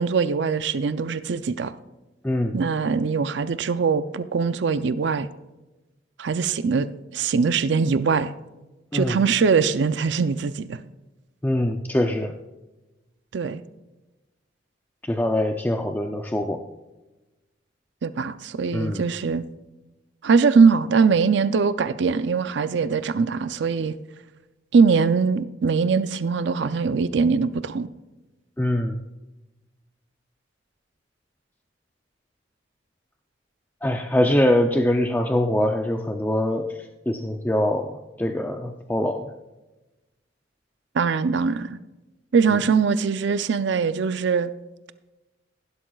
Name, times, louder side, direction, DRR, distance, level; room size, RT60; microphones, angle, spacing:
voice 1, 0.0-1.7 2.5-5.3 6.2-6.9 7.1-8.3 8.9-10.8 13.3-13.6 18.0-19.4 20.2-24.0 24.7-27.9 40.9-41.8 42.3-44.5, right 5 dB, 65° right, 13 dB, 0.4 m, -22 dB
voice 2, 2.2-2.6 8.9-9.2 11.4-12.4 15.1-16.6 18.7-19.1 28.6-29.0 33.8-36.8 37.1-39.3, left 1 dB, 10° left, 4 dB, 0.4 m, -23 dB
16.0 x 11.5 x 2.3 m, 1.1 s
head